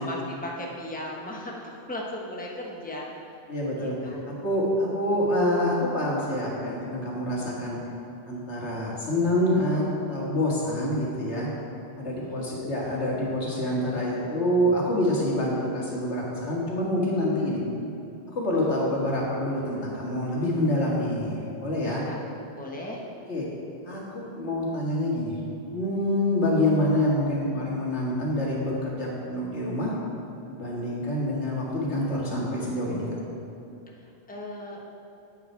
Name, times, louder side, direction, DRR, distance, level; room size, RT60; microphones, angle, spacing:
voice 1, 0.0-3.0 3.8-4.2 12.1-12.5 18.6-18.7 21.8-22.2 22.6-23.0 34.0-34.8, left 1 dB, 10° left, -2 dB, 1.1 m, -37 dB
voice 2, 3.5-7.8 8.2-11.5 12.0-17.6 18.4-22.0 23.3-23.5 23.9-25.4 25.7-29.9 30.5-33.1, left 1 dB, 85° left, -5 dB, 2.3 m, -26 dB
9.8 x 8.2 x 4.5 m, 2.9 s
omnidirectional pair, 1.1 m